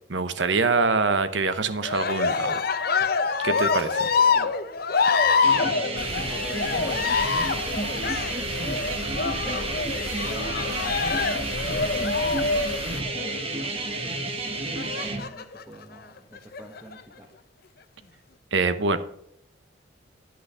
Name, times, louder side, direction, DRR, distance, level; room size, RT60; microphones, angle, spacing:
voice 1, 0.1-2.6 3.4-4.1 18.5-19.0, right 4 dB, 70° right, 12 dB, 0.9 m, -24 dB
Cheering, 1.8-13.5 14.8-15.6 16.4-17.0, left 5 dB, 50° left, 0.7 m, -26 dB
voice 2, 4.2-4.6 5.2-17.3, right 1 dB, 10° right, -1 dB, 1.2 m, -44 dB
sound 1, 5.4-15.2, right 2 dB, 30° right, 1.3 m, -31 dB
sound 2, 6.0-13.0, left 3 dB, 70° left, 1.1 m, -37 dB
10.5 x 6.3 x 5.6 m, 0.74 s
head